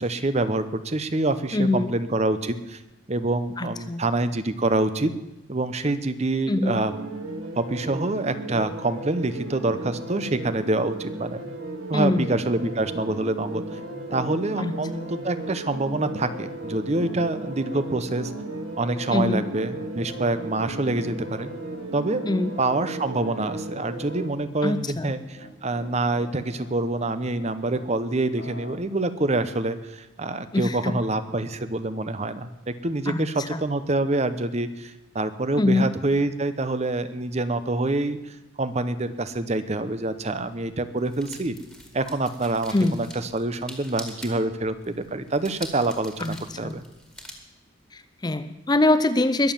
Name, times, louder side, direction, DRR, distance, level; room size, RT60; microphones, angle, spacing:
voice 1, 0.0-2.8 3.1-5.1 5.5-6.9 7.6-11.4 11.9-13.8 14.1-18.3 18.8-21.5 21.9-22.2 22.6-41.5 41.9-46.8, right 2 dB, 35° right, 12 dB, 0.8 m, -26 dB
voice 2, 1.5-1.9 3.6-4.0 6.5-6.8 11.9-12.3 14.6-15.0 19.1-19.4 22.3-22.5 24.6-25.1 30.5-30.9 33.1-33.6 35.6-35.9 42.7-43.0 46.2-46.4 46.6-46.8 47.9-49.5, left 2 dB, 20° left, 12 dB, 0.5 m, -24 dB
sound 1, 6.8-24.3, right 2 dB, 85° right, 2.0 m, -35 dB
Piano, 12.7-27.9 28.4-28.8, left 1 dB, 60° left, 2.3 m, -45 dB
sound 2, 40.0-47.3, left 1 dB, ahead, 2.0 m, -45 dB
21.5 x 7.2 x 7.2 m, 0.98 s
head